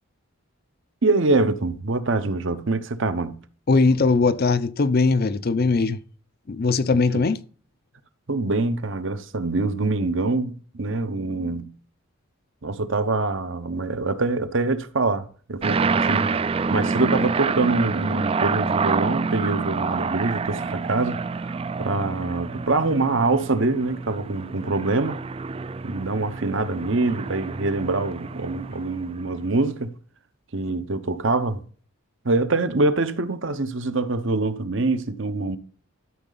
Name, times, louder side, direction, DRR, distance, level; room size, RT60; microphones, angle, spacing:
voice 1, 1.0-3.4 7.1-7.2 8.3-11.7 12.6-25.2 25.8-29.9 30.5-31.6 32.2-35.6, right 3 dB, 55° right, 0.9 m, -24 dB
voice 2, 3.7-6.0 6.5-7.4, left 3 dB, 45° left, 0.5 m, -20 dB
sound 1, 15.6-29.3, right 4 dB, 25° right, 0.3 m, -27 dB
12.5 x 6.5 x 4.0 m
head